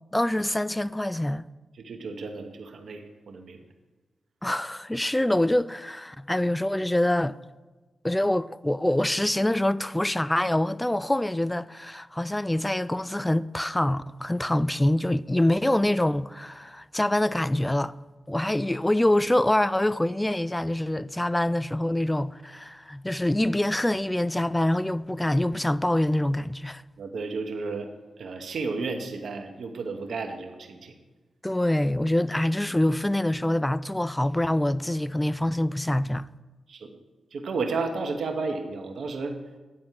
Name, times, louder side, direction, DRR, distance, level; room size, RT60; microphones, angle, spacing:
voice 1, 0.1-1.4 4.4-7.4 8.0-17.9 18.3-26.8 31.4-36.3, left 1 dB, 15° left, 0.3 m, -25 dB
voice 2, 1.7-3.6 27.0-27.9 28.2-31.0 36.7-37.0 37.3-39.4, right 4 dB, 70° right, 1.0 m, -32 dB
9.7 x 4.3 x 7.4 m
supercardioid pair, 40°, 0 cm